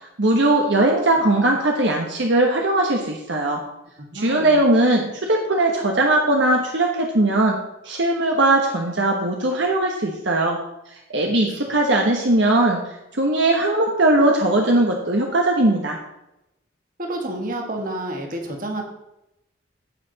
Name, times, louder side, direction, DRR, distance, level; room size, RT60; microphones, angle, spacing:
voice 1, 0.0-3.6 4.1-7.6 7.8-10.6 10.9-16.0, right 2 dB, 65° right, 1 dB, 1.2 m, -19 dB
voice 2, 4.0-4.5 11.1-11.3 17.0-18.8, right 1 dB, 45° right, 2 dB, 1.7 m, -30 dB
16.0 x 5.8 x 4.0 m, 0.89 s
head